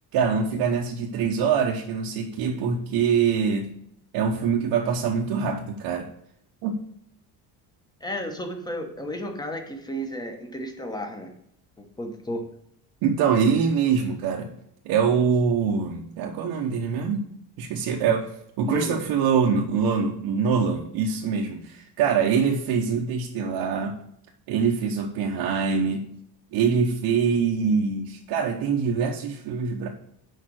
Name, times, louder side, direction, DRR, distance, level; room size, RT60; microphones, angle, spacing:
voice 1, 0.1-3.7 4.1-6.1 6.6-6.8 13.0-14.5 14.8-17.2 17.6-24.0 24.5-26.1 26.5-29.9, right 6 dB, 75° right, 0 dB, 1.0 m, -24 dB
voice 2, 8.0-11.3 11.8-12.5 18.6-19.1, equal, 10° left, 5 dB, 1.0 m, -33 dB
6.5 x 5.1 x 6.3 m, 0.72 s
cardioid pair, 170°, 41 cm